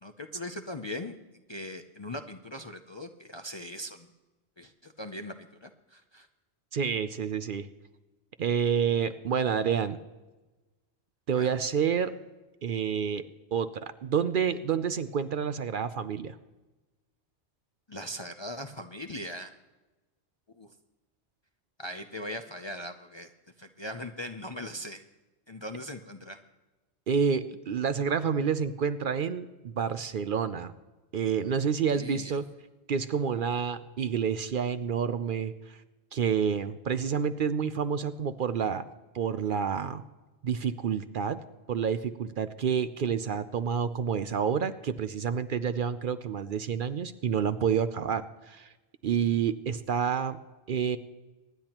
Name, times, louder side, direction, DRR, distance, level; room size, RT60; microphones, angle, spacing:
voice 1, 0.0-1.2 1.5-4.1 4.6-6.3 11.3-11.5 17.9-19.5 20.6-20.7 21.8-23.3 23.6-25.0 25.5-26.4 31.9-32.4, left 1 dB, 35° left, 6 dB, 0.5 m, -40 dB
voice 2, 6.7-7.7 8.4-10.0 11.3-12.1 12.6-13.2 13.5-16.4 27.1-30.7 31.1-32.4 32.9-35.8 36.1-38.8 39.1-40.0 40.4-41.4 41.7-48.7 49.0-50.4 50.7-51.0, right 7 dB, 60° right, 11 dB, 0.7 m, -29 dB
24.0 x 10.5 x 3.0 m, 1.2 s
omnidirectional pair, 1.1 m